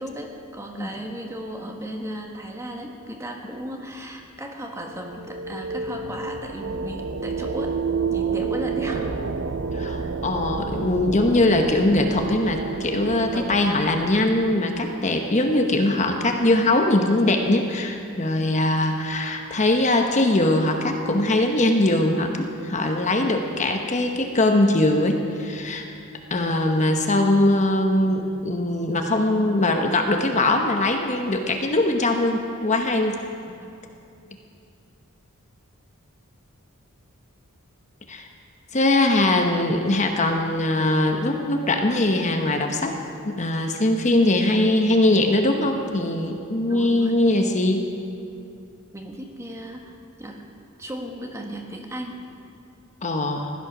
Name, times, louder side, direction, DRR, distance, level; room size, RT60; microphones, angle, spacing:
voice 1, 0.0-7.7 8.1-9.1 10.0-10.2 13.3-13.7 33.5-33.7 46.7-47.1 48.9-50.4 50.8-52.3, equal, 15° right, 2 dB, 1.4 m, -35 dB
sound 1, 4.8-15.4, right 5 dB, 60° right, 0.6 m, -30 dB
voice 2, 9.7-25.8 26.3-33.2 38.1-38.3 38.7-43.0 43.2-47.8 53.0-53.5, left 2 dB, 35° left, 4 dB, 1.0 m, -21 dB
16.0 x 12.0 x 6.0 m, 2.5 s
head